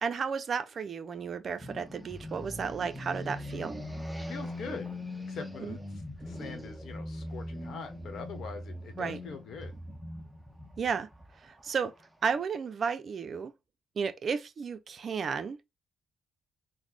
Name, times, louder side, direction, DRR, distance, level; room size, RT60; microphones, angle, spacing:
voice 1, 0.0-3.8 5.6-5.8 9.0-9.2 10.8-11.1 11.4-11.9 12.2-13.5 14.0-15.6, right 6 dB, 50° right, 0.5 m, -33 dB
sound 1, 1.6-12.3, left 1 dB, 5° right, 0.6 m, -41 dB
voice 2, 4.3-4.9 5.3-5.8 6.2-9.7, left 5 dB, 65° left, 1.0 m, -42 dB
3.9 x 2.1 x 3.1 m
cardioid pair, 90°, 0 cm